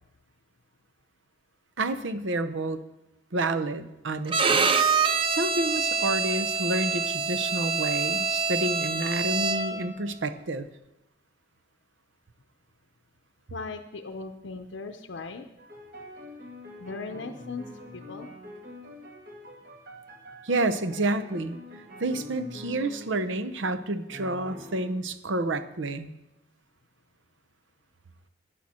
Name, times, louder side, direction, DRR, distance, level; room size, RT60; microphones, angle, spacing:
voice 1, 1.8-2.8 3.3-4.7 5.3-10.7 20.4-21.6 22.0-26.1, right 2 dB, 80° right, 11 dB, 0.8 m, -29 dB
Bowed string instrument, 4.3-9.9, right 5 dB, 30° right, 0.6 m, -26 dB
voice 2, 13.5-15.5 16.8-18.3, left 3 dB, 80° left, 5 dB, 0.6 m, -38 dB
sound 1, 15.6-23.6 24.1-25.0, left 1 dB, 50° right, 2.0 m, -45 dB
12.5 x 10.0 x 4.3 m, 0.94 s
head